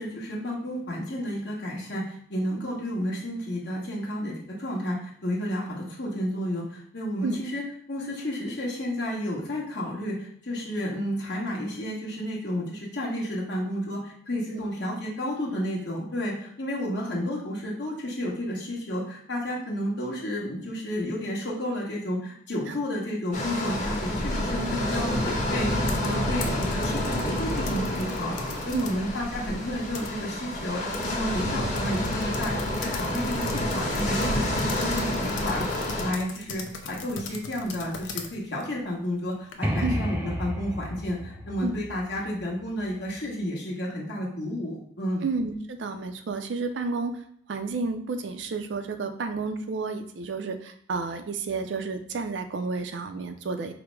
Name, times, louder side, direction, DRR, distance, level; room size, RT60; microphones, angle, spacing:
voice 1, 0.0-7.6 7.9-28.3 28.6-35.7 36.0-45.3, equal, 60° left, -4 dB, 1.2 m, -31 dB
sound 1, 23.3-36.1, left 1 dB, 40° left, 1.0 m, -28 dB
sound 2, 25.8-29.0 29.4-30.5 30.9-31.1 31.3-31.4 31.8-39.8, left 5 dB, 80° left, 0.5 m, -40 dB
sound 3, 39.6-43.3, equal, 10° right, 0.4 m, -32 dB
voice 2, 45.2-53.7, right 3 dB, 70° right, 8 dB, 0.4 m, -31 dB
4.9 x 2.1 x 4.6 m, 0.62 s
head